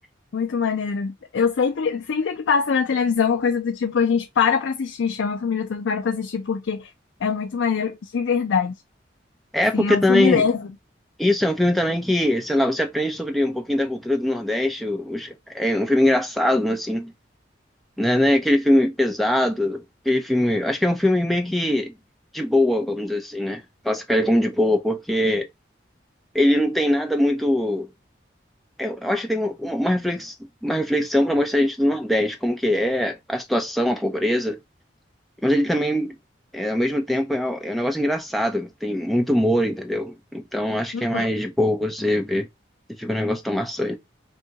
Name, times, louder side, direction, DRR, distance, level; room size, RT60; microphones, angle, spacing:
voice 1, 0.3-6.9 7.2-8.7 9.7-10.7 40.9-41.3, left 6 dB, 85° left, 0.4 m, -23 dB
voice 2, 9.5-10.5 11.2-17.1 18.0-21.9 22.3-25.5 26.3-27.9 28.8-30.3 30.6-34.6 35.4-36.2 36.5-42.5 43.0-44.0, left 1 dB, ahead, 0.5 m, -22 dB
2.7 x 2.3 x 3.9 m
head